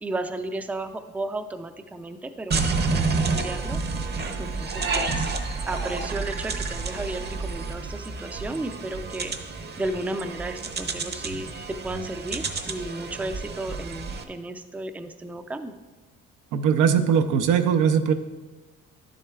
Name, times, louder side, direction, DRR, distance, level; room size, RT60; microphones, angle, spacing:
voice 1, 0.0-3.8 4.4-5.3 5.7-9.3 9.8-15.7, right 2 dB, 5° right, 8 dB, 0.4 m, -34 dB
sound 1, 2.5-14.2, right 4 dB, 35° right, 0.7 m, -30 dB
voice 2, 16.5-18.1, right 7 dB, 90° right, 8 dB, 0.6 m, -20 dB
10.5 x 7.5 x 2.3 m, 1.2 s
cardioid pair, 90°, 30 cm